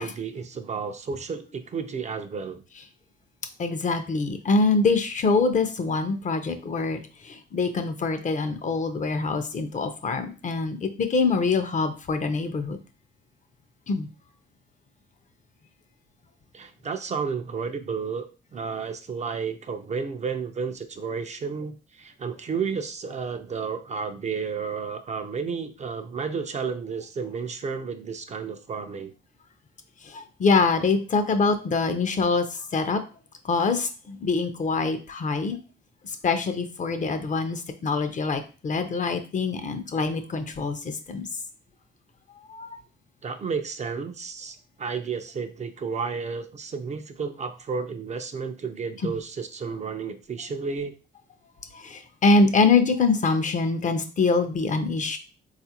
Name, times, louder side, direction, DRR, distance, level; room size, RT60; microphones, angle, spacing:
voice 1, 0.0-2.6 16.5-29.1 43.2-50.9, right 5 dB, 35° right, 7 dB, 0.4 m, -32 dB
voice 2, 3.6-7.0 7.2-12.8 13.9-14.1 30.0-33.0 33.4-35.6 36.2-41.3 42.5-42.7 49.0-49.1 51.7-55.2, left 4 dB, 40° left, 8 dB, 0.5 m, -24 dB
3.7 x 2.4 x 2.8 m, 0.34 s
cardioid pair, 90°, 20 cm